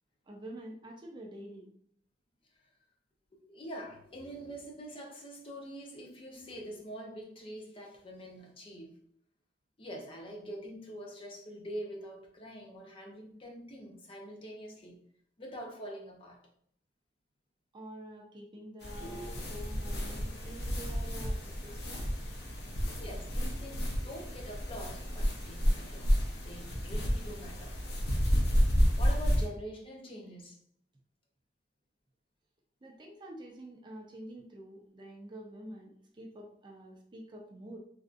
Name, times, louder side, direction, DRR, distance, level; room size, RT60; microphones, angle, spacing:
voice 1, 0.3-1.7 17.7-22.1 32.8-37.8, right 1 dB, 25° right, 1 dB, 0.4 m, -47 dB
voice 2, 3.3-8.9 9.8-15.0 15.4-16.4 23.0-26.1 26.4-27.8 29.0-30.6, equal, 30° left, 0 dB, 0.6 m, -45 dB
sound 1, 18.8-29.5, equal, 70° left, 0.8 m, -31 dB
3.3 x 2.6 x 2.4 m, 0.64 s
head